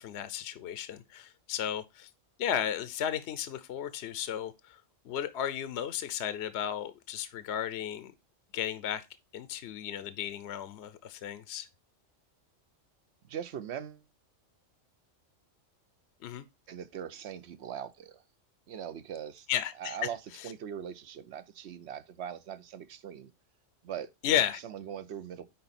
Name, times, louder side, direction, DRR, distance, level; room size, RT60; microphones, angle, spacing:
voice 1, 0.0-2.1 2.4-4.8 5.0-8.1 8.5-9.0 9.3-11.7 16.2-16.4 19.5-20.0 20.4-20.5 24.2-24.6, left 10 dB, 65° left, 0.9 m, -34 dB
voice 2, 13.2-14.0 16.7-18.2 18.7-19.5 19.8-23.3 23.8-24.1 24.6-25.4, right 9 dB, 65° right, 1.0 m, -41 dB
9.6 x 4.0 x 4.2 m
omnidirectional pair, 1.3 m